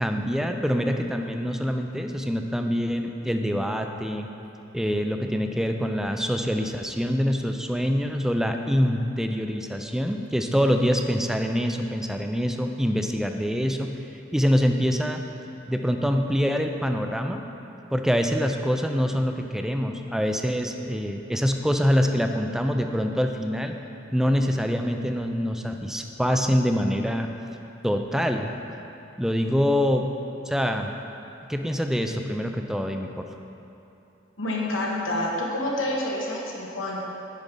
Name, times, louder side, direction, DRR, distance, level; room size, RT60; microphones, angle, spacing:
voice 1, 0.0-4.3 4.7-13.9 14.3-15.2 15.7-17.4 17.9-23.7 24.1-27.3 27.8-28.5 29.2-30.1 30.5-30.9 31.5-33.3, equal, ahead, 5 dB, 0.4 m, -25 dB
voice 2, 34.4-37.0, left 1 dB, 80° left, -3 dB, 1.4 m, -28 dB
9.1 x 4.8 x 5.3 m, 2.9 s
head